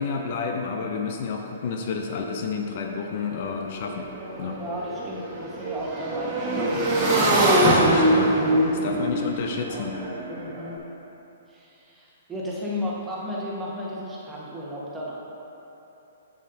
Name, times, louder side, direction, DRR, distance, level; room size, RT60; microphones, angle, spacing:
voice 1, 0.0-4.1 4.4-4.6 7.6-8.3 8.8-10.0, left 5 dB, 50° left, 3 dB, 0.5 m, -30 dB
Motorcycle / Engine, 3.2-3.3 3.5-10.7, right 1 dB, 30° right, 1.5 m, -23 dB
voice 2, 4.4-6.9 8.3-8.7 10.3-10.8 11.5-15.2, left 1 dB, 10° right, -6 dB, 1.4 m, -34 dB
7.3 x 7.2 x 2.8 m, 3.0 s
hypercardioid pair, 130°, 0 cm